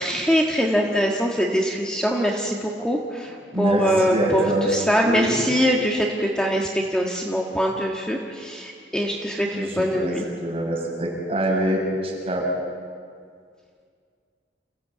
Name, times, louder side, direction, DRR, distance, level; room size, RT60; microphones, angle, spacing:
voice 1, 0.0-10.2, equal, 5° left, -1 dB, 1.5 m, -23 dB
voice 2, 3.5-4.7 5.0-5.4 9.5-10.1 10.4-12.5, right 1 dB, 35° right, -3 dB, 6.8 m, -25 dB
28.5 x 16.0 x 8.5 m, 2.2 s
head